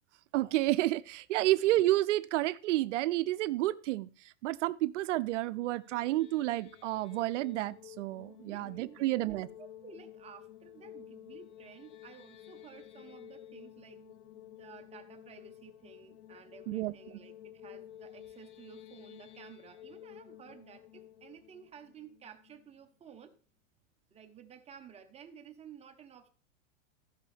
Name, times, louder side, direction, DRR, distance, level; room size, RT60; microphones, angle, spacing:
voice 1, 0.3-9.5 16.7-16.9, right 16 dB, 65° right, 0.5 m, -30 dB
sound 1, 5.7-22.9, left 11 dB, 65° left, 1.1 m, -53 dB
voice 2, 8.4-23.3 24.1-26.3, right 7 dB, 15° right, 1.0 m, -53 dB
15.5 x 5.4 x 3.4 m
supercardioid pair, 145°, 39 cm